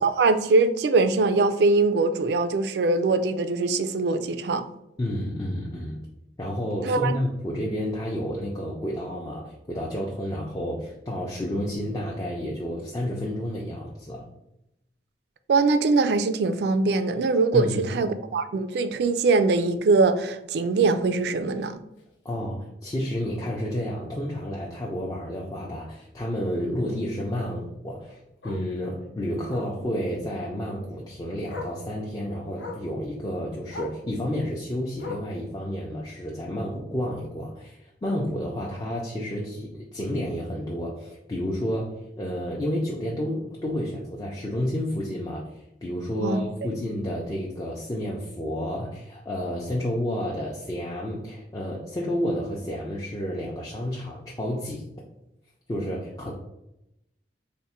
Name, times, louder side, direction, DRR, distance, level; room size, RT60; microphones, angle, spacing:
voice 1, 0.0-4.6 6.9-7.2 15.5-21.8 46.2-46.4, right 3 dB, 65° right, 10 dB, 0.3 m, -22 dB
voice 2, 5.0-6.0 6.4-14.3 17.5-18.0 22.2-45.5 45.8-54.8 55.7-56.3, equal, 20° left, -3 dB, 0.4 m, -30 dB
Bark, 22.0-22.1 22.5-22.7 23.0-23.1 23.4-23.5 24.9-25.0 27.5-27.6 28.4-28.7 29.5-29.8 31.0-31.1 31.5-31.8 32.6-32.9 33.7-34.0 35.0-35.4 36.4-36.5, left 2 dB, 85° left, 0.7 m, -38 dB
3.4 x 2.1 x 4.1 m, 0.85 s
head